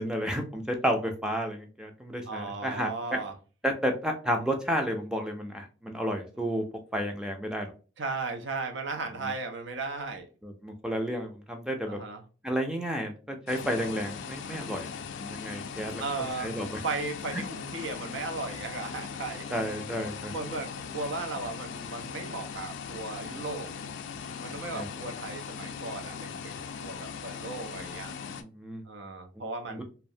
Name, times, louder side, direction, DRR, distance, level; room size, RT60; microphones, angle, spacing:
voice 1, 0.0-2.9 3.6-6.6 6.9-7.7 10.4-12.0 12.4-14.9 15.2-16.0 16.4-16.8 19.5-20.3 24.8-24.9 28.4-28.8 29.7-29.8, equal, 5° right, 0.3 m, -31 dB
voice 2, 2.3-3.3 8.0-10.3 11.9-12.2 16.0-16.6 16.8-19.4 20.3-23.7 24.4-28.1 28.9-29.8, right 3 dB, 80° right, 0.6 m, -36 dB
sound 1, 13.5-28.4, left 6 dB, 80° left, 0.3 m, -39 dB
2.4 x 2.0 x 2.6 m
head